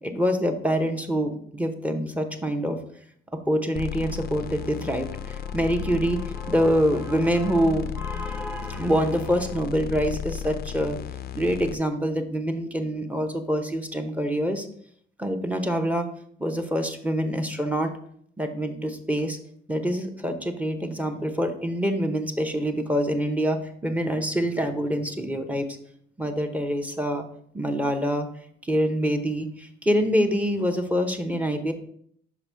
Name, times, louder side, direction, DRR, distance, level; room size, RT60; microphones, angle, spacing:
voice 1, 0.0-2.8 3.5-11.0 11.3-14.7 15.2-16.1 16.4-17.9 18.4-19.4 19.7-25.7 26.2-27.2 27.5-28.3 28.6-31.7, equal, 5° right, 6 dB, 0.8 m, -25 dB
sound 1, 3.7-11.7, left 9 dB, 50° left, 0.4 m, -35 dB
5.9 x 5.0 x 3.4 m, 0.64 s
cardioid pair, 90°, 20 cm